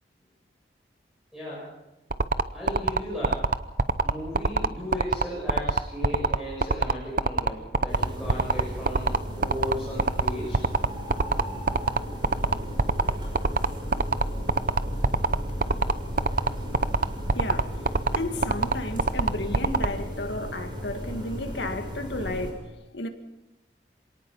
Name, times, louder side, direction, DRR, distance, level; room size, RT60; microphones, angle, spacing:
voice 1, 1.3-1.7 2.5-3.5 4.0-10.6, equal, 5° right, 7.6 m, -35 dB
sound 1, 2.1-19.9, right 3 dB, 50° right, 0.7 m, -22 dB
sound 2, 7.9-22.5, equal, 25° right, 6.4 m, -35 dB
voice 2, 17.4-17.8 18.1-23.1, left 1 dB, 80° left, 2.1 m, -33 dB
26.5 x 18.5 x 5.6 m
head